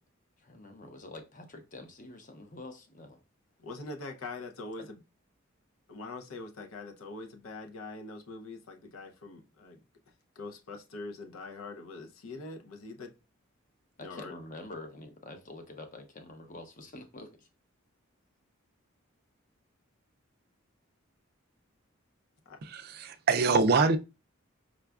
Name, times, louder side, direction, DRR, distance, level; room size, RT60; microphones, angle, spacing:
voice 1, 0.4-3.2 4.8-4.9 14.0-17.5, left 2 dB, 40° left, 0.6 m, -46 dB
voice 2, 3.6-5.0 5.9-9.8 10.4-13.1 14.0-14.3 22.5-22.6, left 3 dB, 90° left, 0.6 m, -43 dB
voice 3, 22.7-24.0, right 4 dB, 50° right, 0.4 m, -24 dB
5.0 x 2.3 x 2.3 m
head